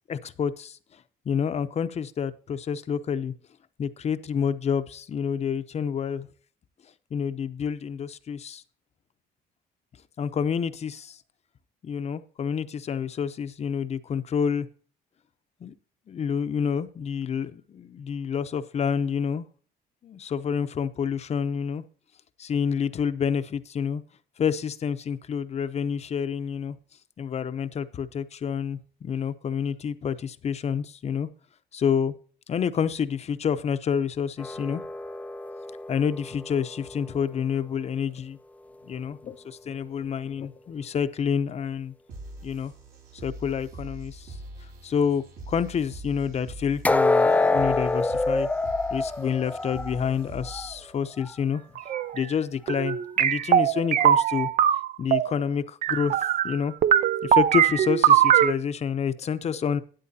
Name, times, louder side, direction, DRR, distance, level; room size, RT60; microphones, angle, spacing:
voice 1, 0.1-0.8 1.3-3.3 3.8-6.3 7.1-8.6 10.2-11.2 11.8-14.7 15.6-15.7 16.1-19.5 20.0-21.8 22.4-24.0 24.4-26.8 27.2-31.3 31.7-32.1 32.5-34.8 35.9-38.4 38.9-41.9 42.4-42.7 43.2-44.4 44.8-48.5 48.9-51.6 52.1-54.5 55.0-56.1 56.4-56.7 57.2-59.8, left 7 dB, 40° left, 13 dB, 0.7 m, -28 dB
sound 1, 34.4-37.5 46.8-50.8 51.1-51.3 51.9-52.0, left 2 dB, 10° left, 0.4 m, -26 dB
sound 2, 42.1-51.1, right 1 dB, 70° right, 4.2 m, -43 dB
sound 3, 51.7-52.2 52.7-55.3 55.8-56.6 56.8-58.5, right 10 dB, 50° right, 0.5 m, -21 dB
12.5 x 9.4 x 2.8 m, 0.42 s
cardioid pair, 110°, 17 cm